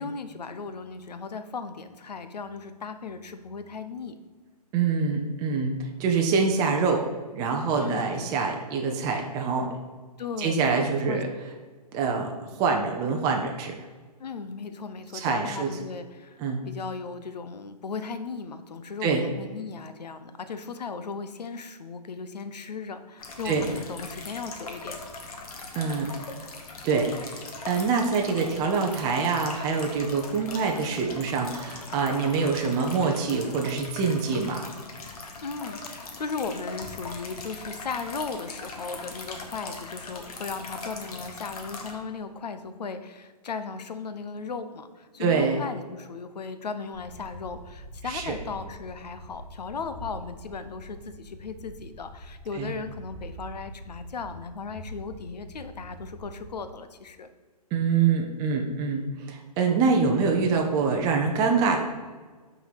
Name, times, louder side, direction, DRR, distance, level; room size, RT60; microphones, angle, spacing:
voice 1, 0.0-4.1 7.7-8.3 10.2-11.2 14.2-16.4 16.7-25.0 35.4-57.3, left 5 dB, 80° left, 10 dB, 0.7 m, -37 dB
voice 2, 4.7-7.0 7.3-9.7 10.4-11.3 11.9-12.3 12.6-13.7 15.1-15.7 16.4-16.6 19.0-19.2 23.4-23.7 25.7-26.1 26.8-27.1 27.6-34.7 45.2-45.6 48.1-48.3 52.6-52.7 57.7-61.8, right 5 dB, 20° right, 2 dB, 0.6 m, -25 dB
sound 1, 23.2-41.9, left 3 dB, 60° left, 1.3 m, -40 dB
sound 2, 46.9-56.7, equal, 45° left, 1.6 m, -44 dB
5.6 x 3.9 x 5.7 m, 1.4 s
hypercardioid pair, 140°, 21 cm